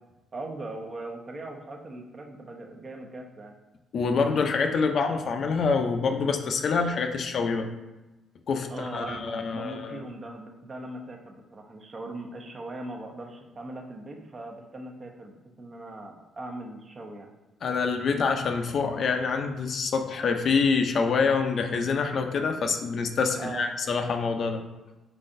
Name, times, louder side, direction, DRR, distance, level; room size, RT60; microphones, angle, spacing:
voice 1, 0.3-3.5 8.7-17.3 23.3-23.7, right 2 dB, 40° right, 2 dB, 0.8 m, -39 dB
voice 2, 3.9-7.7 8.5-10.0 17.6-24.7, left 5 dB, 55° left, 5 dB, 0.5 m, -26 dB
4.8 x 4.0 x 2.6 m, 1.0 s
cardioid pair, 90°, 0 cm